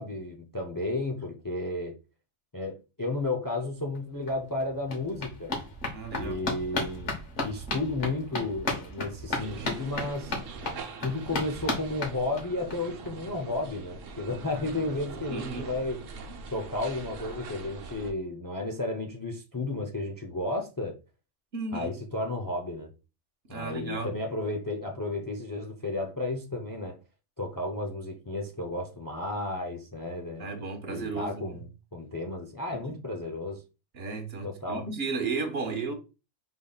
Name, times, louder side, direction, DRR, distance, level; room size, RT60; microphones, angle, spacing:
voice 1, 0.0-2.0 2.5-5.5 6.1-10.4 11.0-16.0 16.5-21.0 21.7-22.9 23.5-27.0 27.4-33.6 34.4-34.9, left 2 dB, 25° left, 0.4 m, -33 dB
sound 1, 3.9-4.0 4.3-12.7 13.1-13.2 13.4-13.5 13.8-13.9, left 2 dB, 70° left, 1.5 m, -35 dB
voice 2, 5.9-6.5 15.3-15.7 21.5-21.9 23.5-24.1 30.4-31.6 32.9-33.0 33.9-35.9, right 4 dB, 55° right, 1.1 m, -34 dB
sound 2, 9.4-18.1, right 4 dB, 85° right, 1.1 m, -43 dB
sound 3, 10.2-16.8, left 1 dB, 15° right, 0.8 m, -55 dB
5.2 x 3.6 x 2.3 m
omnidirectional pair, 1.3 m